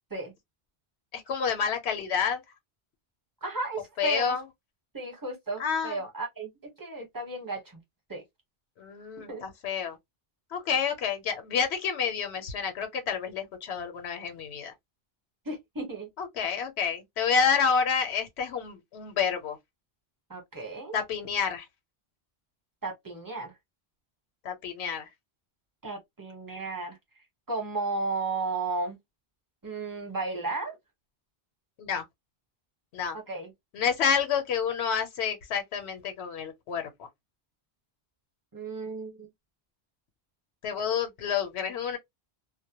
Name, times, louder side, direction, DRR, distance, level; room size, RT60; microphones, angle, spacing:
voice 1, 1.1-2.4 4.0-4.4 5.6-6.0 8.8-10.0 10.5-14.7 16.2-19.6 20.9-21.7 24.4-25.1 31.8-32.0 32.9-33.2 33.7-37.1 40.6-42.0, left 6 dB, 85° left, 0.9 m, -29 dB
voice 2, 3.4-4.4 4.9-7.8 8.1-8.2 9.3-9.4 15.4-16.1 20.3-21.0 22.8-23.5 25.8-27.0 27.5-29.0 29.6-30.7 33.3-33.5 38.5-39.3, right 3 dB, 20° right, 0.9 m, -34 dB
2.2 x 2.1 x 2.8 m
omnidirectional pair, 1.1 m